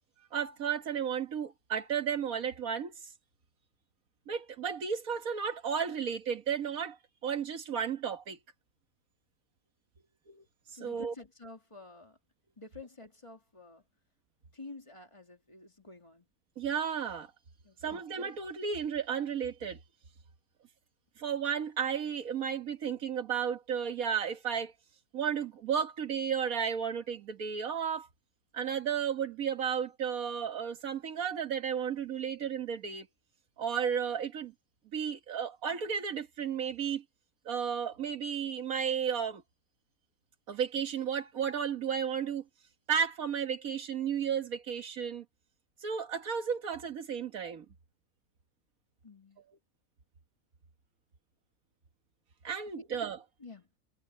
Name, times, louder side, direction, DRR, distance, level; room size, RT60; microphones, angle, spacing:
voice 1, 0.3-2.9 4.3-7.0 7.2-8.4 10.3-10.4 10.8-11.1 16.6-17.3 17.8-19.8 21.2-24.7 25.1-28.1 28.5-33.1 33.6-34.5 34.9-37.0 37.5-39.4 40.5-42.4 42.9-45.3 45.8-47.7 52.4-53.2, right 7 dB, 85° right, 1.9 m, -33 dB
voice 2, 10.7-12.2 12.6-13.8 14.5-16.3 17.6-17.8 49.0-49.4 52.8-52.9 53.4-53.7, left 3 dB, 20° left, 2.5 m, -49 dB
omnidirectional pair, 1.5 m